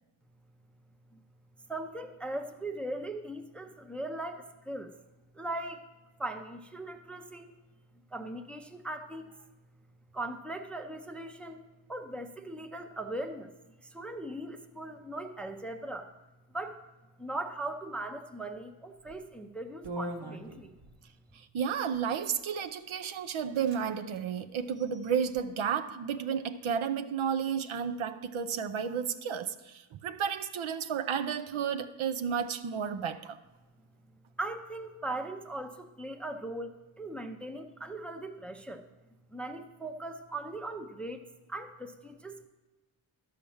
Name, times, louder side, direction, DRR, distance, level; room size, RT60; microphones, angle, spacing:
voice 1, 1.7-4.9 5.3-5.9 6.2-7.5 8.1-9.3 10.1-11.6 11.9-16.1 16.5-16.7 17.2-20.7 34.4-38.9 39.3-41.2 41.5-42.5, right 2 dB, ahead, 0.4 m, -39 dB
sound 1, 19.0-19.3 19.8-21.0 21.9-22.4 23.0-23.1 23.3-23.8 24.1-24.2 24.7-25.4, right 1 dB, 60° right, 1.2 m, -42 dB
voice 2, 21.3-33.4, right 7 dB, 75° right, 0.7 m, -32 dB
12.0 x 5.0 x 7.1 m
wide cardioid pair, 160°, 48 cm